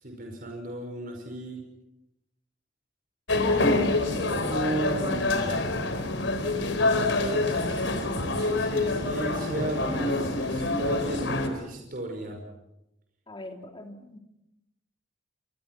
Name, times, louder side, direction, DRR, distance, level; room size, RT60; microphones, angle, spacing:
voice 1, 0.0-1.6 3.6-5.5 6.9-12.4, right 2 dB, 50° right, 2 dB, 5.3 m, -35 dB
sound 1, 3.3-11.5, left 2 dB, 90° left, 4.0 m, -26 dB
voice 2, 13.3-14.2, left 1 dB, 25° left, 4 dB, 3.0 m, -42 dB
29.5 x 26.0 x 6.0 m, 0.89 s
head